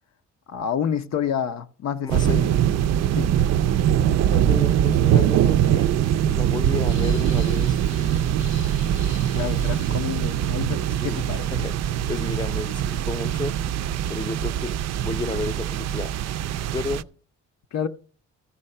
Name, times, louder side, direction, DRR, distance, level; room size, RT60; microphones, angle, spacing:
voice 1, 0.5-2.4 3.1-3.3 9.3-11.5 17.7-17.9, left 8 dB, 60° left, 0.7 m, -28 dB
voice 2, 2.0-2.6 4.2-5.9 6.3-7.8 9.4-9.6 11.0-11.8 12.1-13.6 14.1-14.7 15.0-16.1 16.6-17.1, left 3 dB, 15° left, 0.7 m, -32 dB
sound 1, 2.1-17.0, right 10 dB, 60° right, 0.4 m, -22 dB
sound 2, 6.9-10.6, left 5 dB, 75° left, 1.6 m, -45 dB
14.0 x 5.6 x 5.5 m
cardioid pair, 90°, 30 cm